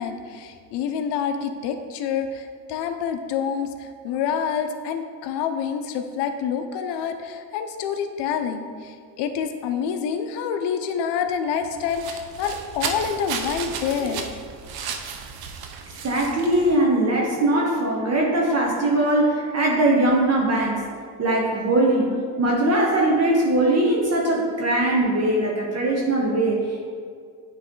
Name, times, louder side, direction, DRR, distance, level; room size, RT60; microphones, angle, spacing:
voice 1, 0.0-14.3, left 7 dB, 60° left, 6 dB, 0.8 m, -27 dB
sound 1, 11.6-16.8, right 6 dB, 50° right, 0.8 m, -34 dB
voice 2, 16.0-20.8 21.2-26.9, right 1 dB, 35° right, -2 dB, 1.1 m, -21 dB
9.6 x 3.3 x 3.8 m, 2.2 s
cardioid pair, 110°, 46 cm